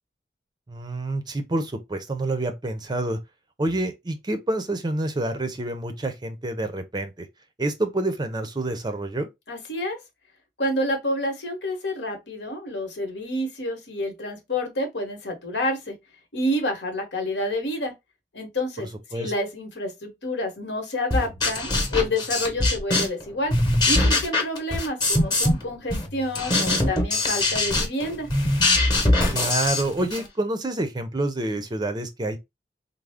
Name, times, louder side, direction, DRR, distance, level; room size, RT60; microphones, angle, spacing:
voice 1, 0.7-3.2 3.6-7.3 7.6-9.3 18.8-19.3 29.3-32.4, right 2 dB, 25° right, 0.5 m, -28 dB
voice 2, 9.5-10.0 10.6-15.9 16.3-17.9 18.3-23.5 23.9-28.3, left 1 dB, 80° left, 1.1 m, -28 dB
sound 1, 21.1-23.2 23.5-25.6 25.9-30.3, left 2 dB, 25° left, 1.0 m, -22 dB
3.5 x 2.0 x 3.4 m
head